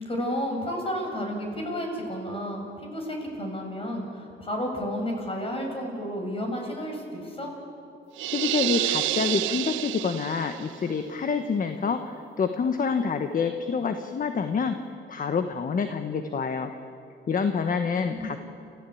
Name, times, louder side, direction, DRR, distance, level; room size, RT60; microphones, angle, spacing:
voice 1, 0.0-7.5 18.1-18.5, equal, 30° left, 2 dB, 6.8 m, -32 dB
sound 1, 8.2-10.7, right 16 dB, 80° right, 0.5 m, -28 dB
voice 2, 8.3-14.8 15.1-16.7 17.3-18.5, left 5 dB, 45° left, 8 dB, 1.4 m, -27 dB
29.5 x 15.5 x 8.7 m, 2.6 s
cardioid pair, 90°, 20 cm